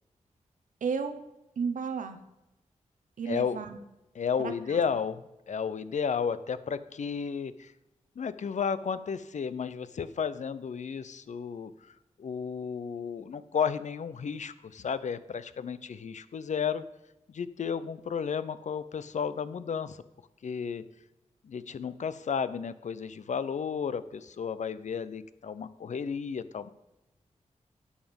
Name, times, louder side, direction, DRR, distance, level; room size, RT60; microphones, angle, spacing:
voice 1, 0.8-1.2 1.6-2.2 3.2-3.8 4.4-4.8, right 6 dB, 90° right, 9 dB, 1.0 m, -33 dB
voice 2, 4.2-5.2 5.5-7.7 8.2-11.7 12.2-16.8 17.3-20.0 20.4-20.8 21.4-26.7, left 6 dB, 65° left, 14 dB, 0.6 m, -33 dB
11.5 x 7.2 x 5.3 m, 0.92 s
cardioid pair, 65°, 13 cm